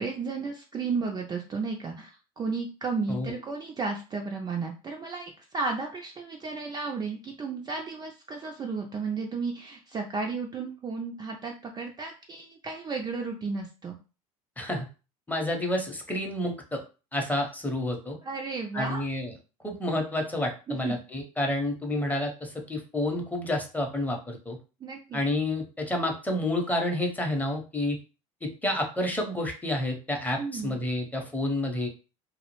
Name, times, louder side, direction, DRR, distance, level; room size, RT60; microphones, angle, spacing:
voice 1, 0.0-14.0 18.2-19.0 20.7-21.0 24.8-25.2 30.4-30.7, right 4 dB, 25° right, 1 dB, 0.4 m, -33 dB
voice 2, 15.3-16.8 17.1-18.2 18.7-19.3 19.6-24.6 25.1-28.0 28.4-31.9, left 1 dB, 10° left, 2 dB, 0.7 m, -29 dB
2.3 x 2.0 x 3.0 m, 0.32 s
hypercardioid pair, 80°, 18 cm